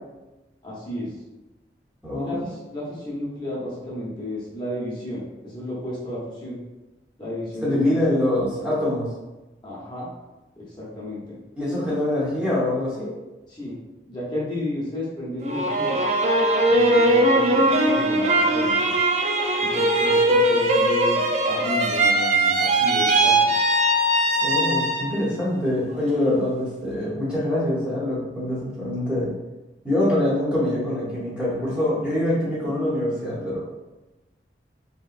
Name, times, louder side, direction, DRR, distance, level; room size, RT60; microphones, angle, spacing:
voice 1, 0.6-1.1 2.1-6.6 7.2-8.2 9.6-10.1 10.6-11.4 13.5-13.8 14.1-16.0 16.6-18.9 19.6-23.5, left 1 dB, 25° left, -7 dB, 0.8 m, -32 dB
voice 2, 2.0-2.4 7.6-9.1 11.6-13.1 24.4-29.3 29.8-33.7, left 1 dB, 5° right, -9 dB, 0.7 m, -24 dB
sound 1, 15.4-25.3 25.7-26.4, right 1 dB, 40° right, 0.3 m, -20 dB
3.0 x 2.9 x 2.5 m, 1.1 s
head